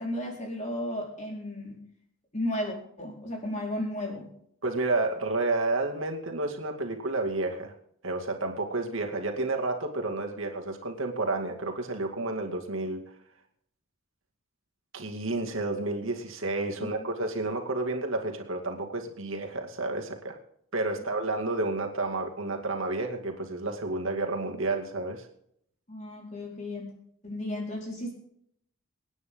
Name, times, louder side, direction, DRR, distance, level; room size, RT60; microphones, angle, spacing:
voice 1, 0.0-1.8 2.3-4.3 16.8-17.1 25.9-26.9 27.2-28.1, left 1 dB, 35° left, 0 dB, 4.6 m, -34 dB
voice 2, 4.6-7.7 8.0-13.0 14.9-20.4 20.7-25.3, right 2 dB, 65° right, 2 dB, 2.4 m, -30 dB
24.5 x 9.7 x 3.8 m, 0.69 s
head